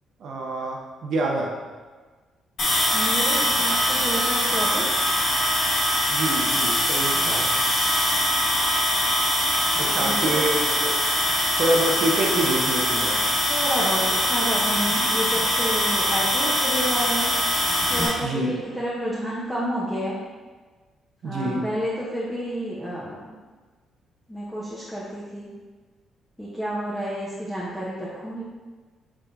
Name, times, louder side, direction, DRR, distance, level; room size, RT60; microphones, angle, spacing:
voice 1, 0.2-1.5 6.1-7.6 9.8-11.0 11.6-13.2 18.2-18.5 21.2-21.6, right 1 dB, 65° right, 0 dB, 0.8 m, -26 dB
sound 1, 2.6-18.1, left 1 dB, 60° left, 1.4 m, -22 dB
voice 2, 2.9-5.0 9.7-10.3 13.5-17.3 17.9-20.2 21.2-23.4 24.3-25.5 26.4-28.4, equal, 5° left, -8 dB, 0.8 m, -30 dB
4.8 x 3.6 x 2.6 m, 1.4 s
cardioid pair, 90°, 0 cm